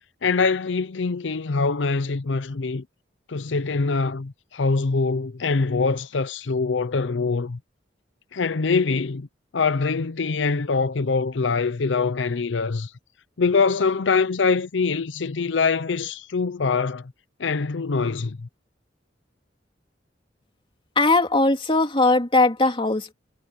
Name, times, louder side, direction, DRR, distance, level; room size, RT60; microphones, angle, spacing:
voice 1, 0.2-2.8 3.3-7.6 8.3-9.3 9.5-12.9 13.4-17.1 17.4-18.5, left 4 dB, 80° left, 0.6 m, -24 dB
voice 2, 20.9-23.1, left 2 dB, 30° left, 3.0 m, -19 dB
head